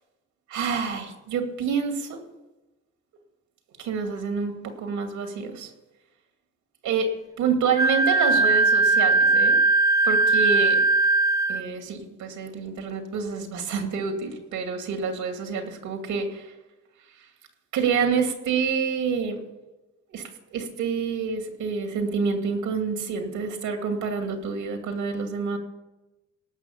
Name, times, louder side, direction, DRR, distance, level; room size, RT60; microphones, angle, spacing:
voice 1, 0.5-2.2 3.8-5.7 6.8-7.1 7.4-9.6 10.0-10.8 11.5-16.5 17.7-19.4 20.1-25.6, right 5 dB, 85° right, 5 dB, 2.3 m, -28 dB
Wind instrument woodwind instrument, 7.8-11.6, right 3 dB, 10° right, 0.7 m, -19 dB
18.0 x 6.2 x 7.1 m, 1.0 s
cardioid pair, 90°, 30 cm